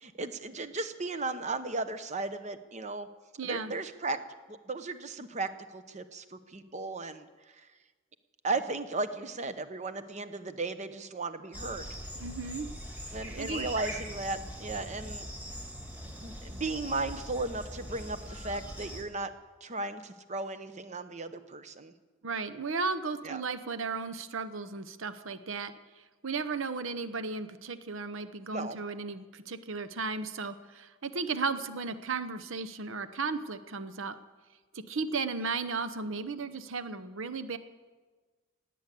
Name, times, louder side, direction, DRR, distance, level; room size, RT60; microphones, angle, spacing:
voice 1, 0.0-3.1 3.4-4.2 4.5-7.3 8.4-11.9 13.1-15.3 16.2-19.3 19.6-21.9 23.2-23.4 28.5-28.8, right 3 dB, 30° right, 11 dB, 0.8 m, -35 dB
voice 2, 3.4-3.7 12.2-12.7 13.4-13.7 22.2-25.7 26.2-34.2 34.7-37.6, right 4 dB, 60° right, 11 dB, 0.8 m, -35 dB
sound 1, 11.5-19.0, equal, 10° right, 2.1 m, -41 dB
17.5 x 9.3 x 8.4 m, 1.4 s
head